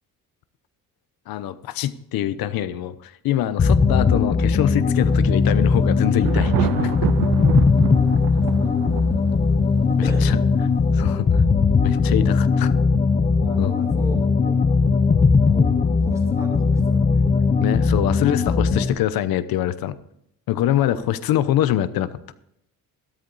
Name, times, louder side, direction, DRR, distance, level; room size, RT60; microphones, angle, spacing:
voice 1, 1.3-7.1 10.0-10.4 10.9-11.4 11.8-12.7 13.6-13.8 17.6-20.0 20.5-22.1, left 12 dB, 80° left, 14 dB, 0.9 m, -24 dB
sound 1, 3.6-18.9, left 4 dB, 20° left, 0.7 m, -19 dB
Thunder, 5.6-11.0, right 16 dB, 70° right, 0.5 m, -28 dB
voice 2, 8.2-8.9 10.0-10.3 13.4-14.7 15.4-17.5 20.8-21.1, equal, 10° right, 0 dB, 2.6 m, -38 dB
13.5 x 13.0 x 4.1 m, 0.76 s
cardioid pair, 170°, 35 cm